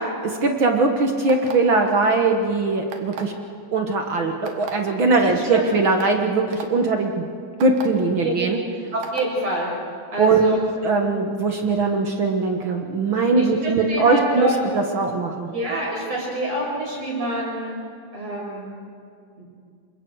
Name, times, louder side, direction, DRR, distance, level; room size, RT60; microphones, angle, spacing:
voice 1, 0.2-3.3 3.7-7.2 7.6-8.6 10.2-10.5 10.8-15.5, right 3 dB, 60° right, 3 dB, 1.3 m, -20 dB
sound 1, 1.3-1.7 2.9-3.3 4.5-4.7 5.5-5.6 6.0-6.1 6.5-6.7 7.6-7.8 9.0-9.3, right 9 dB, 80° right, 3.4 m, -34 dB
voice 2, 5.2-5.7 8.2-8.3 8.9-9.7 10.1-10.6 13.4-14.6 15.5-17.8 18.1-18.7 19.4-19.5, right 1 dB, 45° right, -4 dB, 8.2 m, -27 dB
28.0 x 25.5 x 4.7 m, 2.3 s
omnidirectional pair, 4.1 m